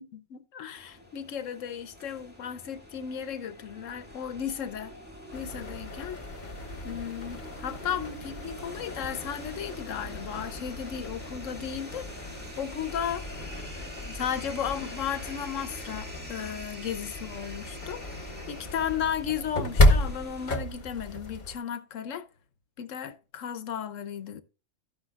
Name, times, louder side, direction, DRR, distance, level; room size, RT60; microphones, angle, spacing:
voice 1, 0.0-4.9 5.3-6.2 6.8-12.1 12.6-13.2 14.0-22.3 22.8-24.4, left 8 dB, 80° left, 1.2 m, -35 dB
sound 1, 0.8-20.6, equal, 10° right, 2.0 m, -45 dB
sound 2, 5.3-21.6, left 1 dB, 40° left, 1.3 m, -32 dB
13.0 x 9.8 x 2.4 m
omnidirectional pair, 1.3 m